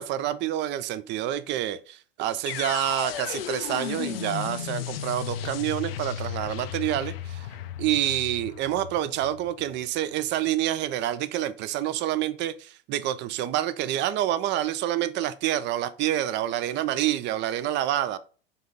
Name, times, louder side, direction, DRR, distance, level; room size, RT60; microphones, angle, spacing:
voice 1, 0.0-7.5 7.8-18.2, right 12 dB, 40° right, 0.5 m, -28 dB
sound 1, 2.5-10.4, left 11 dB, 75° left, 0.6 m, -35 dB
5.5 x 2.7 x 3.5 m
hypercardioid pair, 90°, 29 cm